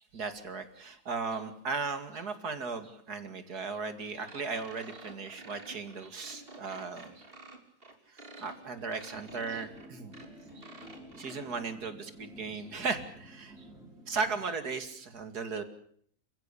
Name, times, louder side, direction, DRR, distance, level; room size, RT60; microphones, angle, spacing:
voice 1, 0.1-7.2 8.4-10.1 10.6-10.7 11.2-13.5 14.1-15.6, right 4 dB, 85° right, 9 dB, 2.9 m, -36 dB
sound 1, 4.3-11.5, right 2 dB, 35° right, 3.5 m, -50 dB
sound 2, 9.1-14.5, right 1 dB, ahead, 6.0 m, -52 dB
28.5 x 15.5 x 8.5 m, 0.65 s
omnidirectional pair, 1.6 m